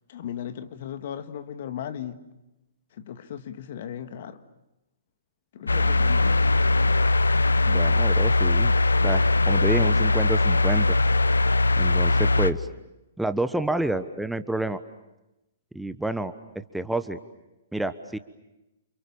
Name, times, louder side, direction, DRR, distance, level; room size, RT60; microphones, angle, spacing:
voice 1, 0.1-2.2 2.9-4.4 5.5-6.3, left 9 dB, 50° left, 9 dB, 1.9 m, -36 dB
sound 1, 5.7-12.5, left 2 dB, 80° left, 0.9 m, -20 dB
voice 2, 7.6-8.7 9.0-11.0 11.8-12.7 13.2-14.8 15.7-17.2 17.7-18.2, right 2 dB, 5° right, 11 dB, 1.1 m, -29 dB
29.5 x 28.5 x 7.1 m, 0.95 s
figure-of-eight pair, 115°, 0 cm